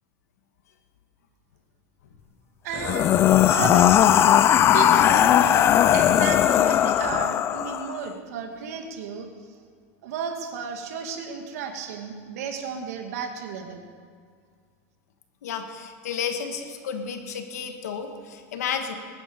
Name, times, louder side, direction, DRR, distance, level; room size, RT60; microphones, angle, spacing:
voice 1, 2.6-4.3 4.7-9.3 10.0-13.8, right 6 dB, 70° right, 4 dB, 2.1 m, -33 dB
sound 1, 2.7-8.0, left 11 dB, 30° left, 0.5 m, -18 dB
voice 2, 15.4-18.9, left 7 dB, 85° left, 6 dB, 1.7 m, -32 dB
21.0 x 9.6 x 5.4 m, 2.1 s
supercardioid pair, 135°, 8 cm